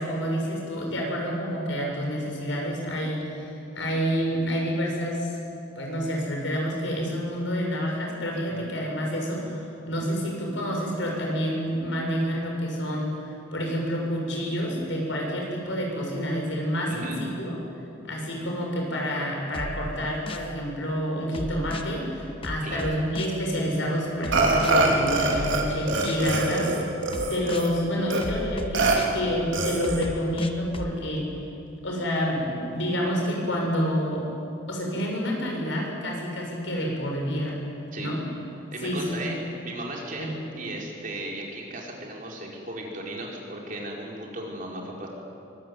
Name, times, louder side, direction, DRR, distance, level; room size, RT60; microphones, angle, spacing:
voice 1, 0.0-5.3 5.8-13.2 13.5-17.6 18.0-26.9 27.3-31.3 31.8-34.3 34.7-37.6 38.0-38.2 38.8-39.2 40.2-40.3, equal, 70° left, -1 dB, 7.6 m, -28 dB
voice 2, 16.9-17.2 22.6-22.9 37.9-38.1 38.7-39.4 39.6-40.3 40.5-45.1, right 1 dB, 45° right, -1 dB, 5.0 m, -36 dB
sound 1, 19.5-20.5 21.3-21.9 22.4-23.4 24.2-24.7 25.3-26.3 27.1-27.7 28.2-29.2 29.8-30.9, left 1 dB, 30° left, 1.3 m, -35 dB
Burping eructation, 24.3-25.6 25.9-27.7 28.1-28.2 28.7-29.0 29.5-30.1, right 2 dB, 75° right, 4.4 m, -24 dB
23.5 x 22.5 x 9.5 m, 2.7 s
head